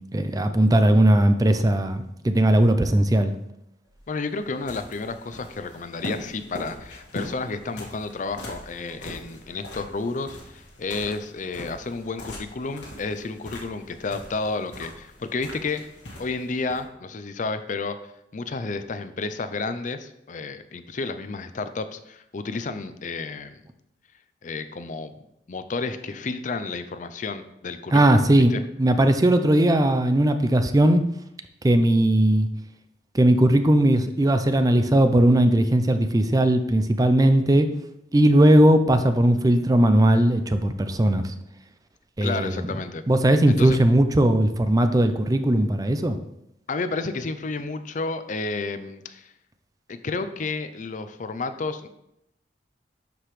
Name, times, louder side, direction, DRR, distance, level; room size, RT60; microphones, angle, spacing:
voice 1, 0.1-3.3 27.9-31.0 31.6-32.5 33.1-37.7 38.1-41.2 42.2-42.6 43.1-46.2, right 1 dB, 20° right, 8 dB, 0.5 m, -18 dB
sound 1, 3.9-16.9, left 1 dB, 85° left, 1.8 m, -41 dB
voice 2, 4.1-15.8 16.2-18.0 18.3-23.6 24.4-25.1 25.5-28.2 28.5-28.6 42.2-43.0 43.5-43.8 46.7-49.3 49.9-51.9, left 3 dB, 45° left, 11 dB, 0.5 m, -31 dB
11.5 x 5.1 x 3.2 m, 0.80 s
head